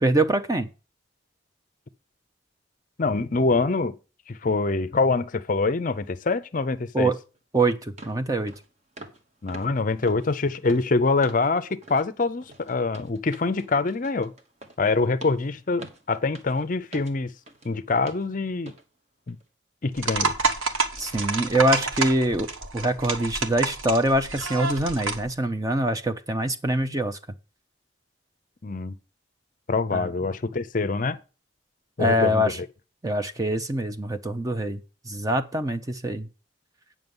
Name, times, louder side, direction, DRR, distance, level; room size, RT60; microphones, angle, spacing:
voice 1, 0.0-0.7 6.9-7.2 7.5-8.5 21.0-27.2 29.9-30.1 32.0-32.6 33.0-34.8 35.1-36.3, right 1 dB, 15° right, 0.5 m, -24 dB
voice 2, 3.0-4.0 4.3-7.1 9.4-14.3 14.8-17.3 17.6-18.7 19.3-19.4 19.8-20.4 28.6-29.0 29.7-31.2 32.0-32.5, left 3 dB, 40° left, 0.5 m, -25 dB
sound 1, 7.4-7.5 8.0-8.2 8.5-8.7 9.0-9.2 9.5-11.5 11.8-12.1 12.4-17.7 18.1-18.3 18.7-18.8 19.3-19.4, right 2 dB, 35° right, 1.1 m, -46 dB
sound 2, 20.0-25.3, right 3 dB, 90° right, 1.3 m, -28 dB
9.3 x 6.1 x 5.3 m
head